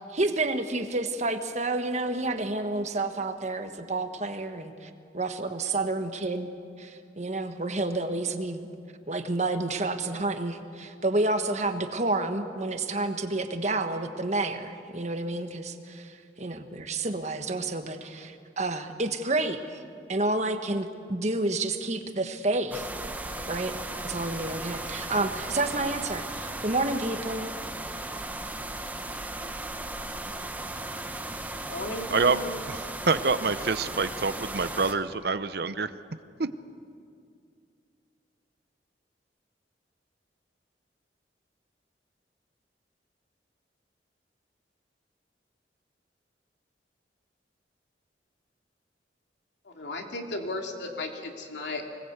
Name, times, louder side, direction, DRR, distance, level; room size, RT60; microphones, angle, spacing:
voice 1, 0.1-6.5 6.8-8.7 9.1-19.8 20.1-22.9 23.5-27.5, right 2 dB, 40° right, 7 dB, 1.3 m, -30 dB
sound 1, 22.7-34.9, right 2 dB, 10° right, 1.0 m, -36 dB
voice 2, 31.7-32.5 49.7-51.8, left 2 dB, 80° left, 2 dB, 2.6 m, -35 dB
voice 3, 32.7-35.9 36.4-36.5, right 4 dB, 60° right, 13 dB, 0.8 m, -26 dB
25.0 x 19.0 x 8.1 m, 2.4 s
head